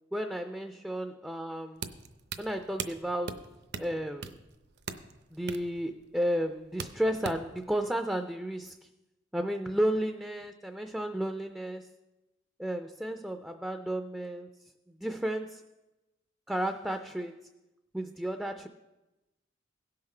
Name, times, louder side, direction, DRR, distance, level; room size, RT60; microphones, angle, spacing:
voice 1, 0.1-1.9 2.4-3.5 3.8-4.4 5.3-8.9 9.3-11.9 12.6-15.6 16.5-17.4 17.9-18.7, right 1 dB, 5° right, 6 dB, 0.3 m, -33 dB
sound 1, 1.8-7.6, right 5 dB, 60° right, 0.6 m, -42 dB
16.5 x 5.8 x 4.3 m, 1.0 s
head